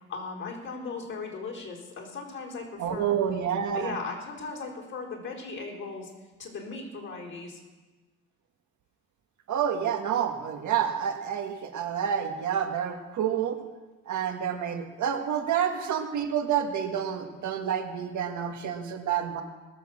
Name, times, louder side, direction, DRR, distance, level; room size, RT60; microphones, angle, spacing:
voice 1, 0.1-3.1 3.8-6.1 6.4-7.6, left 4 dB, 40° left, -2 dB, 4.2 m, -37 dB
voice 2, 2.8-4.0 9.5-13.6 14.1-19.4, right 8 dB, 75° right, 5 dB, 1.6 m, -29 dB
20.0 x 7.1 x 7.4 m, 1.2 s
cardioid pair, 90°, 30 cm